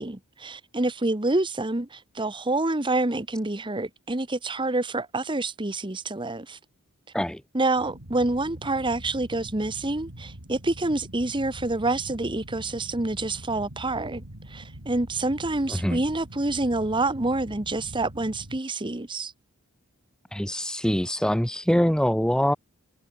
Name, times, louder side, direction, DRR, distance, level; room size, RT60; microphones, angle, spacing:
voice 1, 0.0-6.6 7.5-19.3, right 2 dB, 20° right, 1.1 m, -27 dB
sound 1, 7.8-18.6, right 1 dB, 70° right, 3.3 m, -43 dB
voice 2, 15.7-16.0 20.3-22.5, equal, 5° left, 0.7 m, -24 dB
head